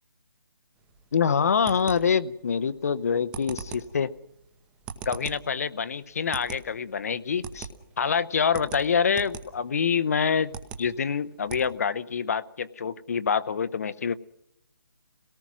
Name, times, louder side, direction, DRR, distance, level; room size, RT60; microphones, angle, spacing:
sound 1, 0.8-11.6, right 6 dB, 10° right, 1.0 m, -43 dB
voice 1, 1.1-4.1 5.1-7.7 8.0-10.5 10.8-14.1, left 6 dB, 45° left, 15 dB, 0.8 m, -26 dB
27.0 x 18.0 x 6.1 m, 0.75 s
hypercardioid pair, 170°, 11 cm